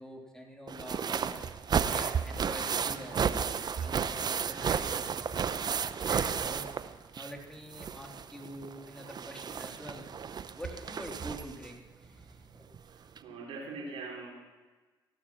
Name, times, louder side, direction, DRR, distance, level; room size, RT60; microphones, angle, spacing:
voice 1, 0.0-1.4 1.9-5.5 6.0-6.6 7.1-10.1 10.5-12.7, equal, 5° left, 1 dB, 3.4 m, -46 dB
sound 1, 0.7-7.4 7.7-11.7 12.7-12.8 13.2-13.3, right 7 dB, 45° right, 0.8 m, -33 dB
voice 2, 12.8-14.3, right 3 dB, 70° right, -1 dB, 3.1 m, -42 dB
15.0 x 12.0 x 5.9 m, 1.3 s
supercardioid pair, 60°, 10 cm